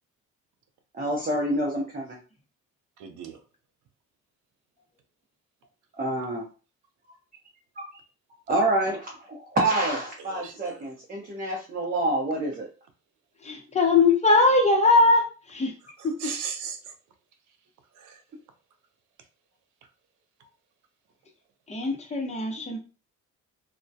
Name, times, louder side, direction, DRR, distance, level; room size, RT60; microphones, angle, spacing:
voice 1, 0.9-2.2 6.0-6.4 8.5-12.7, right 1 dB, 30° right, -1 dB, 0.6 m, -27 dB
voice 2, 3.0-3.4 10.2-10.8 16.0-16.9 18.0-18.2, right 7 dB, 80° right, 7 dB, 0.5 m, -37 dB
voice 3, 13.4-15.2 15.5-15.7 21.7-22.8, left 3 dB, 20° left, 1 dB, 0.7 m, -20 dB
2.2 x 2.1 x 2.7 m, 0.35 s
cardioid pair, 90°, 30 cm